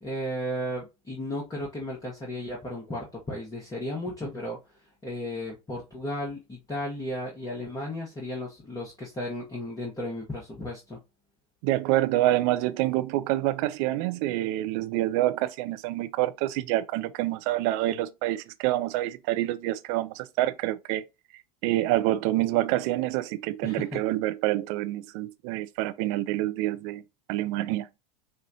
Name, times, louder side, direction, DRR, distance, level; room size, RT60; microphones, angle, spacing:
voice 1, 0.0-4.6 5.0-11.0 23.6-24.0, left 1 dB, 20° left, 1.3 m, -34 dB
voice 2, 11.6-21.0 21.6-27.0 27.3-27.9, right 15 dB, 50° right, 0.5 m, -27 dB
5.6 x 2.4 x 2.8 m
figure-of-eight pair, 80°, 20 cm